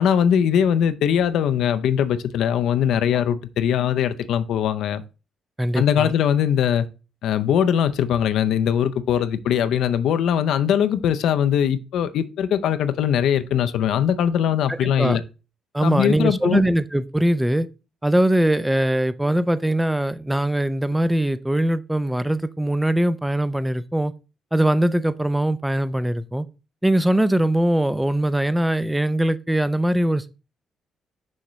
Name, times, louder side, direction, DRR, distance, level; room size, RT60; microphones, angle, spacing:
voice 1, 0.0-5.0 5.7-6.9 7.2-15.2 15.8-16.6, left 9 dB, 80° left, 0.6 m, -21 dB
voice 2, 5.6-6.1 14.7-15.2 15.7-17.7 18.0-24.1 24.5-26.5 26.8-30.3, right 1 dB, 5° right, 0.5 m, -21 dB
6.3 x 5.8 x 3.1 m
cardioid pair, 90°, 0 cm